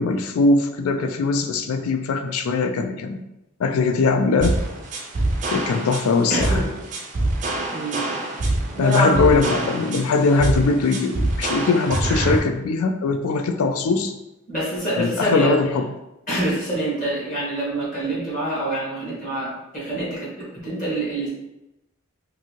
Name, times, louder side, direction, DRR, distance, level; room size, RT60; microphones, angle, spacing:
voice 1, 0.0-3.2 3.6-4.6 5.5-6.6 8.8-14.1 15.0-15.9, left 3 dB, 85° left, 7 dB, 0.3 m, -21 dB
sound 1, 4.4-12.4, right 2 dB, 35° right, 0.4 m, -25 dB
voice 2, 6.3-6.7 7.7-8.0 8.7-9.2 10.2-10.4 13.9-14.0 14.5-15.6 16.3-20.2 20.6-21.3, right 1 dB, 40° left, -7 dB, 1.0 m, -25 dB
2.7 x 2.6 x 2.8 m, 0.93 s
head